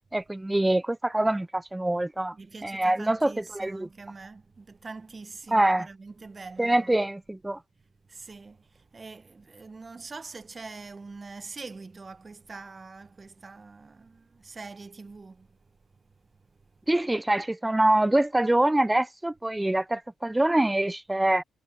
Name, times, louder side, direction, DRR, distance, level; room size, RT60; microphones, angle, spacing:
voice 1, 0.1-2.3 2.6-3.9 5.5-5.9 6.6-7.6 16.9-21.4, right 1 dB, 10° right, 0.3 m, -24 dB
voice 2, 2.3-6.9 8.0-16.7, right 4 dB, 30° right, 1.0 m, -44 dB
cardioid pair, 90°, 0 cm